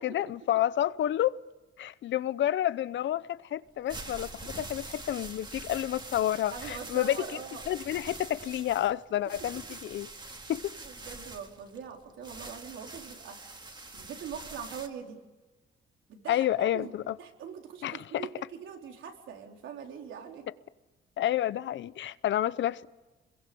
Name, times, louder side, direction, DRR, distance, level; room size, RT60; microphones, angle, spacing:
voice 1, 0.0-1.4 1.8-7.4 7.7-10.1 10.5-10.8 16.3-17.2 17.8-18.3 21.2-22.9, left 12 dB, 70° left, 0.8 m, -30 dB
sound 1, 3.7-14.9, right 2 dB, 20° right, 2.4 m, -44 dB
voice 2, 6.5-7.6 10.8-13.6 13.9-15.2 16.1-16.9 17.2-20.5, right 7 dB, 75° right, 4.1 m, -43 dB
27.5 x 22.5 x 7.0 m
cardioid pair, 90°, 20 cm